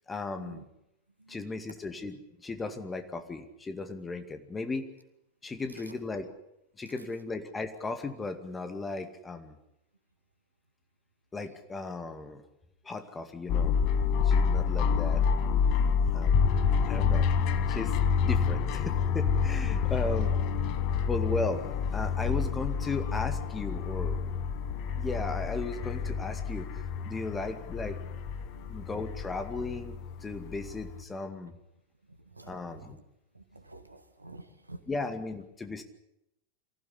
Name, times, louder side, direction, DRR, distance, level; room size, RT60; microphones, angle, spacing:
voice 1, 0.1-0.6 1.3-4.9 5.4-6.3 6.8-9.6 11.3-12.4 12.8-13.7 14.1-15.2 16.1-16.4 16.9-17.3 17.7-17.9 18.2-20.3 21.1-21.6 21.9-24.3 24.9-26.7 27.0-28.0 28.7-30.0 30.2-31.5 32.5-33.0 34.9-35.8, left 3 dB, 15° left, 8 dB, 2.1 m, -36 dB
voice 2, 1.2-1.8 2.8-2.9 5.7-6.0 6.9-7.0 12.9-13.0 16.2-16.5 24.7-24.8 28.1-28.2 28.5-28.9 32.1-33.0 33.3-35.1, right 2 dB, 85° right, 9 dB, 1.9 m, -51 dB
sound 1, 13.5-31.0, left 6 dB, 40° left, 1.4 m, -28 dB
24.0 x 15.5 x 10.0 m, 0.85 s
figure-of-eight pair, 90°, 0 cm